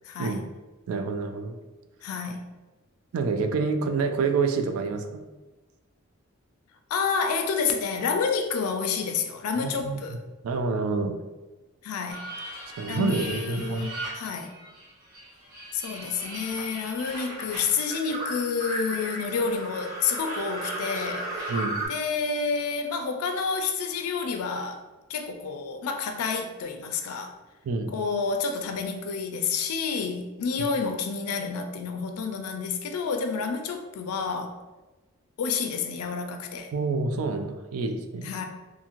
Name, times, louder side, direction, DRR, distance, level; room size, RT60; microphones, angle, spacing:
voice 1, 0.0-0.5 2.0-2.4 6.9-10.2 11.8-12.3 12.9-14.6 15.7-21.6 21.9-24.8 25.1-27.3 27.9-34.6 35.4-36.7 38.2-38.4, left 5 dB, 80° left, 0.4 m, -29 dB
voice 2, 0.9-1.6 3.1-5.2 9.6-10.0 10.4-11.1 12.8-13.9 21.5-21.8 27.6-27.9 36.7-38.3, right 4 dB, 75° right, 0.3 m, -27 dB
sound 1, 12.1-14.9 15.1-21.9, right 1 dB, 45° right, 1.1 m, -36 dB
2.6 x 2.4 x 3.0 m
head